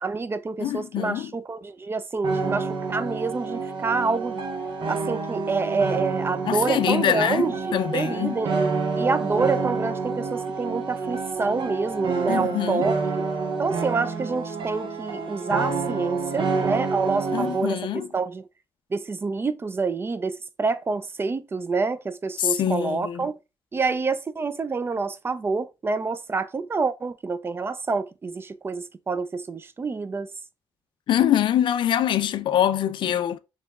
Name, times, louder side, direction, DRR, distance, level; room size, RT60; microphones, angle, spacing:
voice 1, 0.0-4.4 4.9-8.6 8.9-13.2 13.6-18.4 18.9-23.3 23.7-30.3, right 4 dB, 30° right, 0.3 m, -27 dB
voice 2, 0.6-1.3 6.5-8.4 12.3-12.9 17.3-18.1 22.4-23.3 31.1-33.4, left 10 dB, 70° left, 0.4 m, -24 dB
sound 1, 2.2-17.7, right 4 dB, 75° right, 0.7 m, -28 dB
4.4 x 3.0 x 2.3 m
cardioid pair, 90°, 9 cm